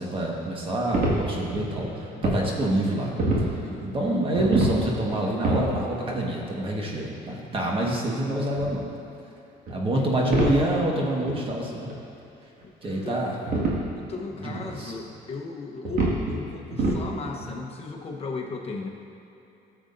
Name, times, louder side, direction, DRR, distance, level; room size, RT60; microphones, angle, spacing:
voice 1, 0.0-3.1 3.8-8.8 9.7-11.9 12.8-13.3 14.4-14.9, right 1 dB, 30° right, -2 dB, 1.6 m, -26 dB
sound 1, 0.9-2.4 2.8-3.5 4.2-4.8 5.1-5.7 6.2-6.3 7.5-7.6 8.6-8.7 9.7-9.9 10.3-10.6 10.9-11.0 11.2-11.3 11.9-12.0 12.6-13.0 13.5-13.8 14.5-14.6 15.1-15.2 15.8-16.4 16.7-17.0 17.4-17.5, right 2 dB, 60° right, 2.0 m, -26 dB
voice 2, 3.6-4.2 9.8-10.1 12.6-13.2 14.0-18.9, left 4 dB, 35° left, 0 dB, 1.1 m, -36 dB
13.5 x 7.7 x 2.7 m, 2.9 s
cardioid pair, 110°, 17 cm